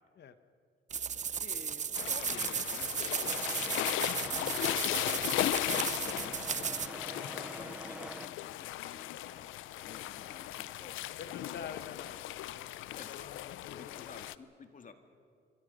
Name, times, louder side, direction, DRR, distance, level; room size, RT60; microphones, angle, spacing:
sound 1, 0.9-6.9, right 7 dB, 35° right, 0.7 m, -35 dB
voice 1, 1.4-2.9 3.2-6.8 7.4-11.3 13.0-13.3 13.7-14.9, left 5 dB, 40° left, 6 dB, 2.0 m, -52 dB
sound 2, 1.9-14.3, left 14 dB, 85° left, 0.6 m, -37 dB
sound 3, 3.2-8.3, right 1 dB, 5° right, 0.7 m, -45 dB
voice 2, 11.2-12.7 13.1-13.9, left 7 dB, 60° left, 10 dB, 1.4 m, -47 dB
27.0 x 24.0 x 5.4 m, 2.3 s
cardioid pair, 90°, 20 cm